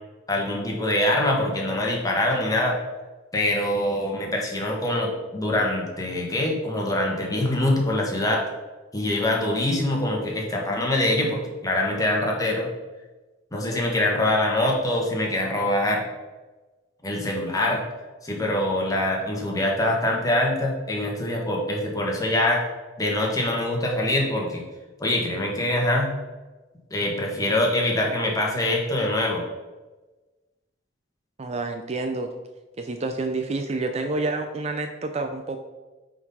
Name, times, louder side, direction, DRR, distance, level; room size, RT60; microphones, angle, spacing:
voice 1, 0.3-2.8 3.3-8.4 8.9-12.7 13.5-16.0 17.0-17.8 18.2-22.6 23.0-24.6 25.0-26.1 26.9-29.4, left 1 dB, 20° left, -1 dB, 1.4 m, -24 dB
voice 2, 31.4-32.3 32.8-35.6, right 3 dB, 35° right, 6 dB, 0.5 m, -28 dB
9.3 x 4.0 x 4.2 m, 1.2 s
head